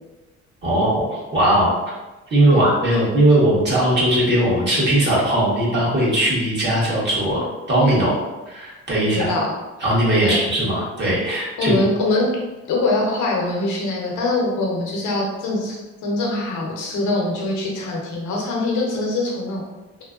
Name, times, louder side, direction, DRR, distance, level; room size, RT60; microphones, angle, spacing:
voice 1, 0.6-1.7 2.3-7.4 7.7-8.2 8.5-9.3 9.8-11.7, right 1 dB, 35° right, -7 dB, 1.4 m, -19 dB
voice 2, 9.1-9.5 10.2-10.4 11.6-12.3 12.7-15.8 16.0-19.6, left 2 dB, 80° left, -2 dB, 0.9 m, -23 dB
3.1 x 2.1 x 2.4 m, 1.1 s
cardioid pair, 90°, 30 cm